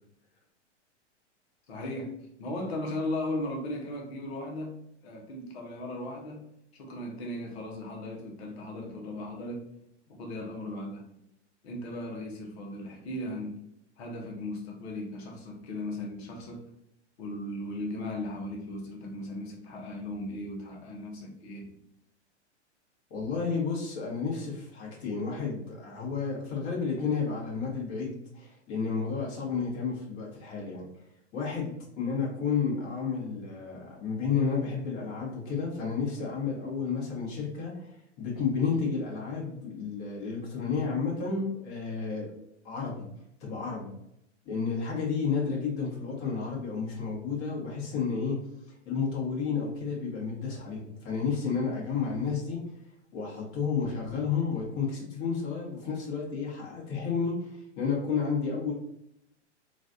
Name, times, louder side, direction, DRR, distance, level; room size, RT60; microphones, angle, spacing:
voice 1, 1.7-4.8 5.0-6.4 6.7-9.7 10.1-11.1 11.6-13.6 14.0-16.7 17.2-21.7, left 1 dB, 60° left, 0 dB, 1.1 m, -37 dB
voice 2, 23.1-30.8 31.3-42.3 42.6-43.1 43.4-43.9 44.4-48.4 48.8-52.6 53.1-58.7, left 5 dB, 35° left, -3 dB, 1.5 m, -31 dB
3.1 x 2.4 x 2.6 m, 0.77 s
hypercardioid pair, 125°, 36 cm